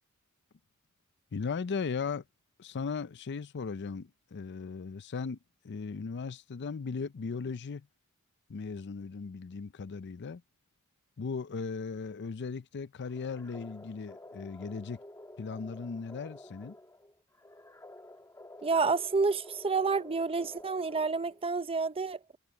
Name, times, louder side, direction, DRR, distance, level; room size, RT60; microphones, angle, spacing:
voice 1, 1.3-2.2 2.6-5.4 5.6-7.9 8.5-10.4 11.2-15.0 15.4-16.7, left 5 dB, 50° left, 0.5 m, -37 dB
sound 1, 13.1-21.5, left 1 dB, 15° left, 2.4 m, -51 dB
voice 2, 18.6-22.2, right 4 dB, 25° right, 0.7 m, -29 dB
head